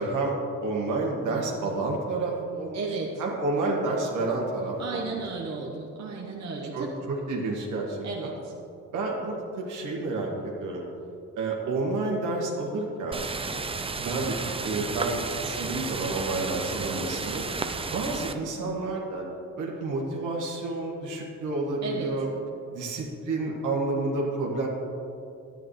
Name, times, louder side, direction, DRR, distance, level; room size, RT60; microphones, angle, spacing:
voice 1, 0.0-2.8 3.2-5.2 5.5-5.6 6.7-8.3 8.9-10.8 11.4-13.2 14.0-17.4 17.9-19.2 19.6-22.3 22.7-24.7, right 2 dB, 90° right, -1 dB, 1.9 m, -30 dB
voice 2, 2.7-3.1 4.8-6.9 8.0-8.5 21.8-22.1, right 4 dB, 60° right, -1 dB, 1.2 m, -34 dB
sound 1, 13.1-18.3, right 4 dB, 20° right, 0.5 m, -33 dB
11.5 x 10.0 x 3.2 m, 2.7 s
cardioid pair, 90°, 30 cm